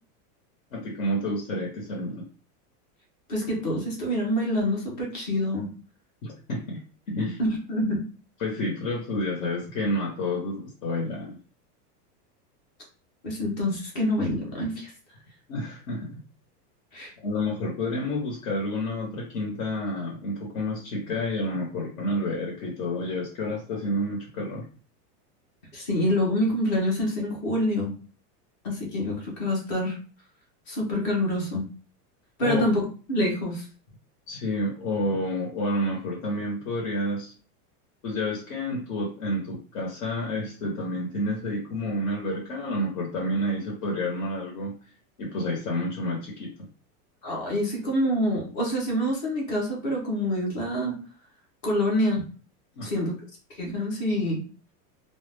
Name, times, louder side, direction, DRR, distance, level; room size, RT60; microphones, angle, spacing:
voice 1, 0.7-2.2 6.2-6.8 7.1-7.4 8.4-11.4 15.5-16.2 17.2-24.7 32.4-32.7 34.3-37.3 38.0-44.7 45.2-46.5 52.7-52.9, left 1 dB, 55° left, -3 dB, 0.8 m, -29 dB
voice 2, 3.3-5.7 7.4-8.0 13.2-14.9 16.9-17.1 25.7-27.9 28.6-30.0 30.7-31.6 32.4-33.7 47.2-50.9 51.6-52.2 52.8-53.1 53.6-54.4, left 1 dB, 30° left, -2 dB, 0.5 m, -26 dB
2.2 x 2.0 x 3.2 m, 0.38 s
supercardioid pair, 175°, 47 cm